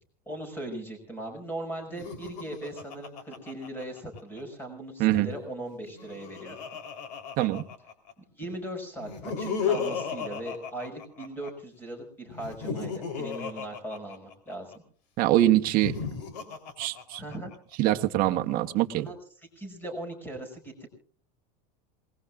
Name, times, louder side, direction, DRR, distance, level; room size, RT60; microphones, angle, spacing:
voice 1, 0.3-6.6 8.2-14.7 17.2-17.5 19.0-19.2 19.6-20.9, right 1 dB, 10° left, 5 dB, 5.7 m, -39 dB
Laughter, 1.9-4.4 5.7-8.1 9.0-11.5 12.3-14.8 15.6-17.6, left 6 dB, 75° left, 3.6 m, -35 dB
voice 2, 15.2-15.9 16.8-17.2 17.8-19.1, right 14 dB, 45° right, 6 dB, 1.2 m, -24 dB
27.5 x 20.0 x 2.5 m, 0.43 s
supercardioid pair, 140°, 21 cm